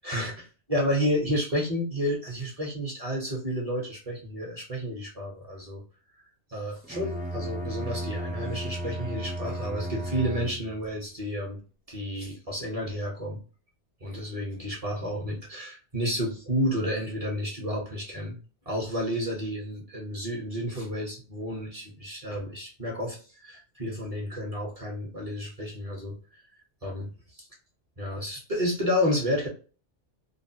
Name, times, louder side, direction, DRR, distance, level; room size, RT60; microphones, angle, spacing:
voice 1, 0.0-5.8 6.5-11.6 11.9-13.4 14.0-18.4 18.6-26.2 26.8-27.1 28.0-29.5, equal, 30° right, -2 dB, 1.1 m, -31 dB
Bowed string instrument, 6.8-10.9, right 1 dB, 15° right, 0.4 m, -34 dB
3.3 x 2.3 x 2.7 m, 0.37 s
omnidirectional pair, 1.2 m